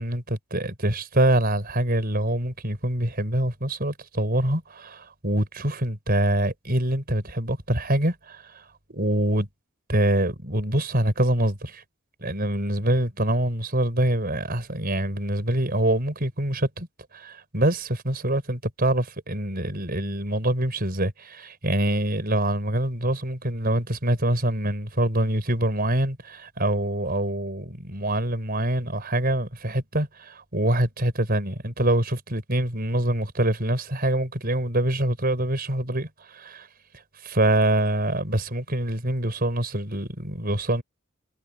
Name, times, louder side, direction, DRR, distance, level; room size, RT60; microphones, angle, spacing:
voice 1, 0.0-9.5 9.9-11.8 12.2-16.9 17.1-36.7 37.2-40.8, right 1 dB, 45° right, 5.1 m, -25 dB
head